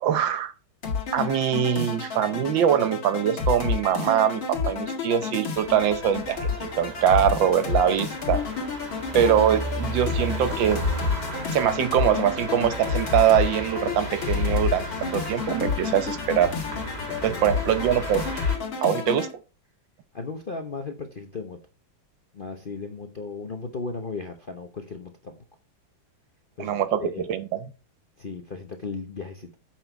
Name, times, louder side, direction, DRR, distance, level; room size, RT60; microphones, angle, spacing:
voice 1, 0.0-0.5 1.1-8.4 9.1-10.9 11.5-16.5 17.2-18.2 18.8-19.3 26.6-27.6, right 9 dB, 75° right, 1.6 m, -23 dB
sound 1, 0.8-19.3, left 5 dB, 85° left, 2.9 m, -30 dB
sound 2, 5.5-18.6, right 1 dB, 20° right, 1.9 m, -35 dB
voice 2, 17.1-17.4 20.1-21.6 22.3-25.4 26.6-27.2 28.2-29.6, left 4 dB, 45° left, 0.7 m, -36 dB
8.6 x 5.8 x 4.5 m
omnidirectional pair, 2.1 m